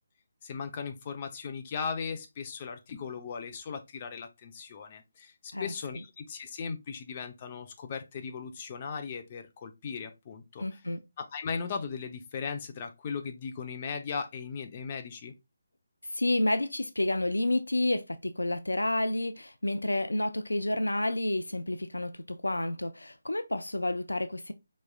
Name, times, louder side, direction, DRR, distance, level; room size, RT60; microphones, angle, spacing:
voice 1, 0.4-10.6 11.2-15.3, left 5 dB, 35° left, 0.6 m, -37 dB
voice 2, 10.6-11.0 16.1-24.5, left 1 dB, 85° left, 0.4 m, -30 dB
4.5 x 3.1 x 2.2 m
figure-of-eight pair, 150°, 0 cm